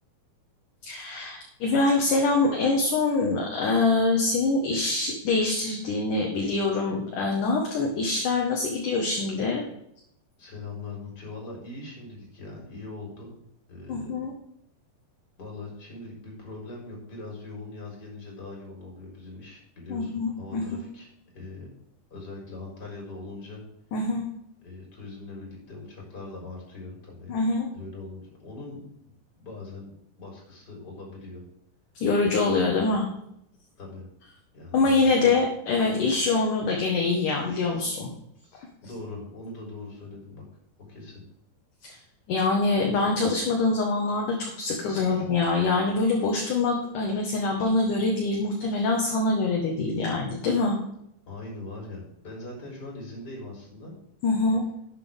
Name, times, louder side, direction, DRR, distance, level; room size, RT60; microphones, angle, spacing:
voice 1, 0.8-9.6 13.9-14.3 19.9-20.9 23.9-24.3 27.3-27.7 32.0-33.1 34.7-38.1 41.8-42.0 42.3-50.8 54.2-54.6, left 3 dB, 60° left, 0 dB, 2.7 m, -24 dB
voice 2, 10.4-13.3 13.7-14.2 15.4-21.7 22.1-23.6 24.6-27.3 27.7-28.8 29.3-29.9 30.2-31.4 33.8-34.1 34.5-35.3 38.8-40.4 40.9-41.2 45.0-45.3 51.3-53.9, left 2 dB, 25° left, -1 dB, 4.5 m, -41 dB
11.5 x 8.3 x 3.6 m, 0.75 s
omnidirectional pair, 4.7 m